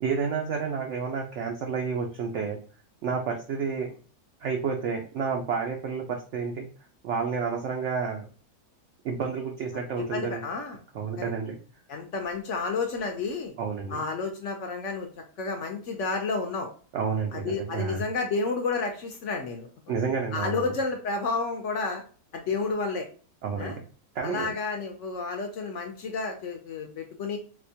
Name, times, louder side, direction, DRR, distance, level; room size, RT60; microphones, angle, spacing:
voice 1, 0.0-2.6 3.0-3.9 4.4-6.7 7.0-8.3 9.0-10.4 10.9-11.6 13.6-14.0 16.9-18.0 19.9-20.7 23.4-23.7 24.2-24.5, right 5 dB, 70° right, 2 dB, 0.7 m, -30 dB
voice 2, 9.7-10.8 11.2-11.3 11.9-13.5 13.9-15.1 15.4-16.7 17.3-19.7 20.3-22.0 22.3-23.1 23.6-23.8 24.2-27.4, left 4 dB, 65° left, 4 dB, 0.7 m, -31 dB
4.2 x 2.2 x 2.7 m, 0.40 s
omnidirectional pair, 1.7 m